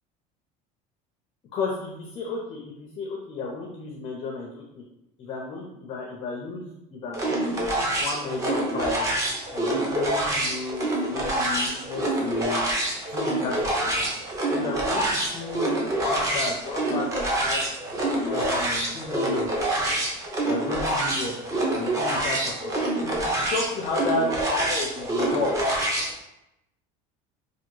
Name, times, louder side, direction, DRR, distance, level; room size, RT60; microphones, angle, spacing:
voice 1, 1.5-4.6 5.2-9.0 9.5-12.6 13.1-14.1 14.5-15.7 16.0-17.6 18.3-19.5 20.4-21.3 21.7-25.5, left 3 dB, 30° left, -1 dB, 0.4 m, -33 dB
sound 1, 7.1-26.1, right 1 dB, 20° right, 0.5 m, -26 dB
3.3 x 2.2 x 3.0 m, 0.89 s
cardioid pair, 170°, 16 cm